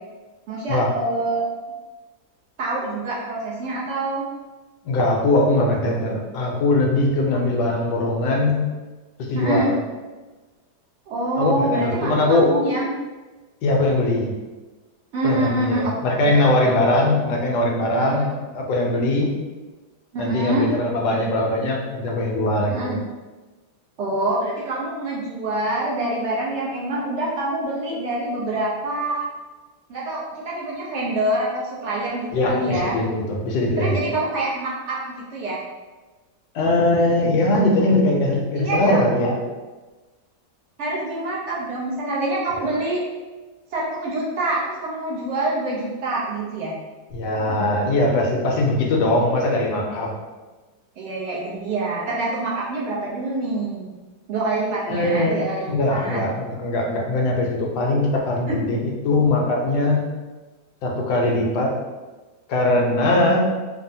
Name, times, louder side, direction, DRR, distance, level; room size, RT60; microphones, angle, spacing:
voice 1, 0.5-1.4 2.6-4.3 9.3-9.7 11.1-12.9 15.1-15.9 16.2-16.8 18.0-18.1 20.1-20.7 22.7-23.0 24.0-29.3 29.9-33.0 33.8-35.6 38.6-39.0 40.8-43.0 43.7-46.7 51.0-53.9 54.3-56.2, right 2 dB, 70° right, -5 dB, 0.6 m, -26 dB
voice 2, 4.8-8.7 9.2-9.8 11.4-12.5 13.6-14.3 15.2-19.3 20.2-23.0 32.3-34.0 36.5-39.4 42.6-42.7 47.1-50.1 54.9-60.0 60.8-61.7 62.5-63.5, left 2 dB, 80° left, 0 dB, 1.2 m, -21 dB
3.3 x 2.0 x 2.6 m, 1.2 s
omnidirectional pair, 1.8 m